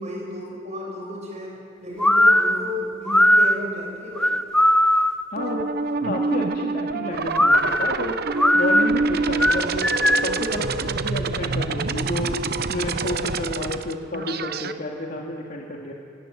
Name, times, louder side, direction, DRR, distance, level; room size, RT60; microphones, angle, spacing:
voice 1, 0.0-4.4, left 1 dB, 35° right, -2 dB, 7.6 m, -33 dB
sound 1, 2.0-5.3 7.3-10.4, left 1 dB, 5° left, 0.6 m, -19 dB
voice 2, 5.3-5.7 6.0-8.2 8.5-9.9 10.2-15.9, left 1 dB, 50° left, -1 dB, 2.4 m, -30 dB
sound 2, 5.4-14.7, right 4 dB, 55° right, 0.9 m, -26 dB
27.0 x 19.5 x 9.2 m, 2.5 s
head